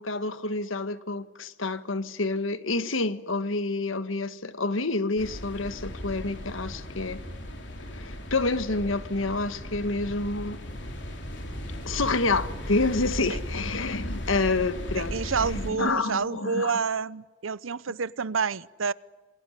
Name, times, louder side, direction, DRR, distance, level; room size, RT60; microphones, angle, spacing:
voice 1, 0.0-7.2 7.9-10.6 11.8-16.7, left 3 dB, 85° left, 1.5 m, -28 dB
sound 1, 5.2-15.7, equal, 60° left, 3.6 m, -36 dB
voice 2, 14.9-18.9, right 5 dB, 85° right, 0.8 m, -29 dB
27.5 x 21.0 x 9.9 m
head